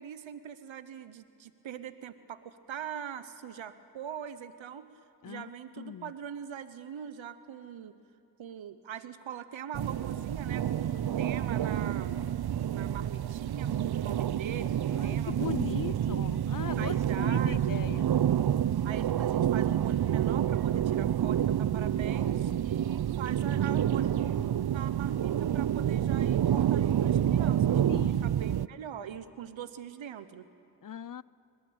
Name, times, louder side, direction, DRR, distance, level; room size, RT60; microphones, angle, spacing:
voice 1, 0.0-4.9 5.2-7.9 8.4-12.1 12.7-16.1 16.8-17.9 18.8-30.5, right 8 dB, 80° right, 12 dB, 1.0 m, -42 dB
voice 2, 5.8-6.1 14.9-18.1 27.9-28.3 30.8-31.2, left 9 dB, 45° left, 20 dB, 0.6 m, -39 dB
sound 1, 9.7-28.7, right 10 dB, 55° right, 0.6 m, -28 dB
21.5 x 21.5 x 8.8 m, 2.6 s
cardioid pair, 40°, 46 cm